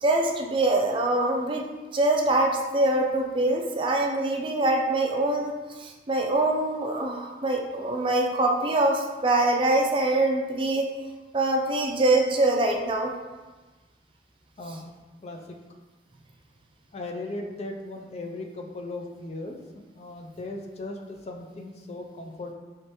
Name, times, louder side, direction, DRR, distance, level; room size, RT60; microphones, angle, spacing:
voice 1, 0.0-1.6 1.9-5.5 5.8-10.9 11.3-13.1, right 2 dB, 30° right, 1 dB, 0.4 m, -24 dB
voice 2, 16.9-19.6 19.9-22.5, left 2 dB, 35° left, 3 dB, 0.4 m, -37 dB
4.6 x 3.1 x 2.9 m, 1.2 s
head